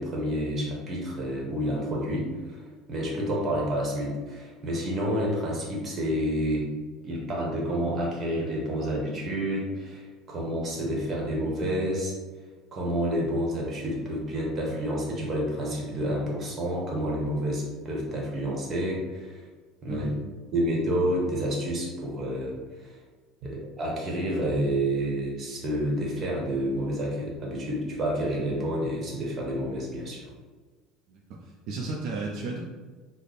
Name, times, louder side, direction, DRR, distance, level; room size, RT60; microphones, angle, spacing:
voice 1, 0.0-2.6 2.9-6.7 7.0-12.1 12.7-19.4 19.8-20.1 20.5-22.6 22.8-22.9 23.4-30.2, equal, 30° right, -2 dB, 1.0 m, -29 dB
voice 2, 19.9-20.2 31.1-32.6, right 3 dB, 65° right, -2 dB, 0.5 m, -34 dB
3.3 x 2.1 x 4.0 m, 1.4 s
cardioid pair, 135°, 0 cm